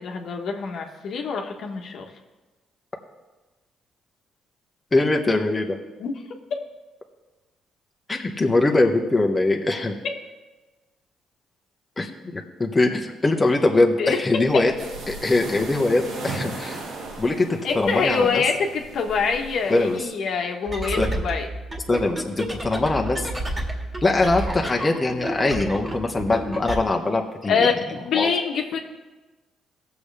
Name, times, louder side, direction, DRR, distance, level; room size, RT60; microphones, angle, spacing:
voice 1, 0.0-2.1 6.0-6.1 14.0-14.6 17.6-21.5 27.5-28.8, left 5 dB, 70° left, 2 dB, 1.4 m, -25 dB
voice 2, 4.9-5.8 8.1-9.9 12.0-14.7 15.1-16.8 17.2-18.4 19.7-20.1 21.0-21.2 21.9-23.3 24.0-27.7 28.1-28.3, left 2 dB, 20° left, 1 dB, 1.2 m, -22 dB
sound 1, 14.3-20.0, right 2 dB, 80° right, 1.9 m, -37 dB
sound 2, 20.6-26.8, right 1 dB, 20° right, 2.0 m, -31 dB
17.5 x 7.1 x 3.4 m, 1.2 s
cardioid pair, 90°, 0 cm